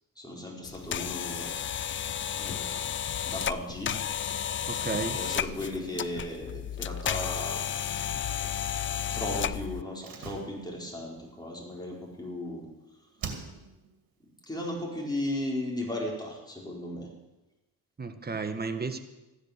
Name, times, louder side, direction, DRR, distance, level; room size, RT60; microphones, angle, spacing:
voice 1, 0.2-1.5 2.4-2.9 3.3-4.0 5.1-7.7 9.1-12.7 14.5-17.1, left 1 dB, 10° left, -2 dB, 4.6 m, -36 dB
sound 1, 0.6-9.8, left 9 dB, 35° left, 0.4 m, -33 dB
voice 2, 4.7-5.2 18.0-19.0, right 4 dB, 25° right, 8 dB, 1.4 m, -33 dB
Slam, 10.0-12.7 13.2-13.9 14.2-14.3, right 6 dB, 75° right, 2.3 m, -43 dB
14.0 x 10.0 x 6.7 m, 1.0 s
cardioid pair, 80°, 35 cm